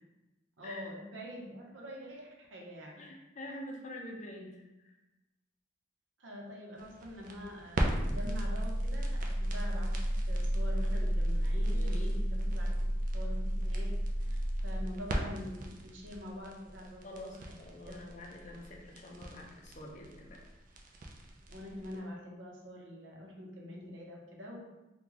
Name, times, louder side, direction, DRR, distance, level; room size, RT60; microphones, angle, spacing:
voice 1, 0.6-3.0 6.2-10.0 10.3-17.6 17.8-18.0 21.5-24.6, left 1 dB, 85° right, -1 dB, 0.7 m, -45 dB
voice 2, 3.0-5.0 11.7-12.1 17.0-20.4, left 1 dB, 40° left, 0 dB, 0.5 m, -46 dB
sound 1, 6.8-21.9, equal, 45° right, 0.4 m, -33 dB
3.7 x 2.2 x 2.9 m, 1.0 s
head